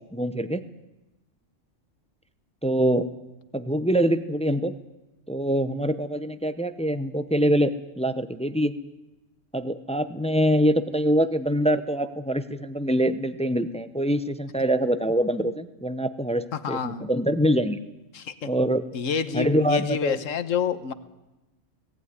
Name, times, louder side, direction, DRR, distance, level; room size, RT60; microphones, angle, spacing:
voice 1, 0.1-0.6 2.6-3.1 3.5-4.7 5.3-8.7 9.5-17.8 18.4-18.9 19.3-20.2, equal, 5° left, 11 dB, 0.6 m, -24 dB
voice 2, 16.5-17.1 18.1-18.5 18.9-20.9, left 7 dB, 85° left, 12 dB, 1.4 m, -28 dB
18.5 x 15.5 x 9.7 m, 1.0 s
omnidirectional pair, 1.3 m